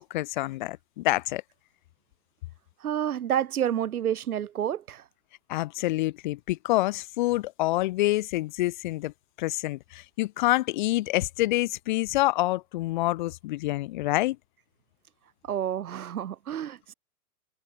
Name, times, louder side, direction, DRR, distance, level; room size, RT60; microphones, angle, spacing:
voice 1, 0.0-1.4 5.5-9.1 9.4-14.4, left 18 dB, 35° left, 1.2 m, -27 dB
voice 2, 2.8-5.0 15.5-16.9, right 10 dB, 85° right, 1.2 m, -29 dB
hypercardioid pair, 160°, 43 cm